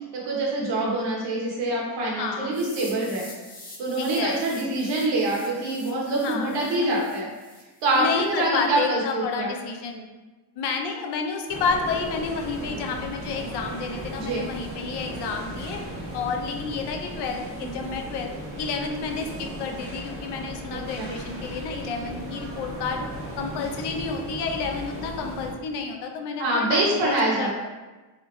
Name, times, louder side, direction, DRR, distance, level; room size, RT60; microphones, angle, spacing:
voice 1, 0.1-3.3 3.8-7.3 7.8-9.5 14.2-14.4 20.7-21.1 26.4-27.5, right 2 dB, 90° right, -3 dB, 1.2 m, -25 dB
voice 2, 2.2-2.5 4.0-4.4 6.2-7.0 7.9-10.1 10.6-15.8 16.1-18.3 18.6-23.1 23.4-27.5, left 5 dB, 75° left, 3 dB, 0.7 m, -30 dB
sound 1, 2.5-8.5, left 2 dB, 20° left, 0.8 m, -46 dB
sound 2, 11.5-25.5, right 1 dB, 50° right, 1.3 m, -36 dB
3.6 x 3.2 x 3.0 m, 1.2 s
cardioid pair, 140°, 41 cm